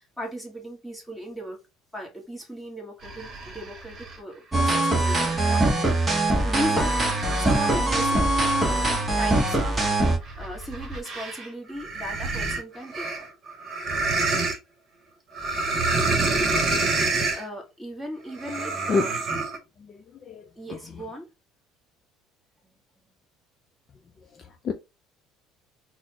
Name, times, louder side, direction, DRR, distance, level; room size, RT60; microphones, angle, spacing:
voice 1, 0.2-1.6 1.9-5.7 6.4-9.8 10.4-13.3 17.3-19.1 20.6-21.3 22.6-22.7, equal, ahead, 1.2 m, -36 dB
sound 1, 3.0-4.2 4.7-11.5 11.8-14.6 15.3-17.4 18.3-19.6, right 3 dB, 35° right, 1.1 m, -29 dB
sound 2, 4.5-10.2, right 2 dB, 15° right, 0.9 m, -22 dB
voice 2, 19.8-21.0 24.3-24.7, left 4 dB, 35° left, 0.4 m, -30 dB
4.1 x 2.0 x 2.7 m
cardioid pair, 125°, 0 cm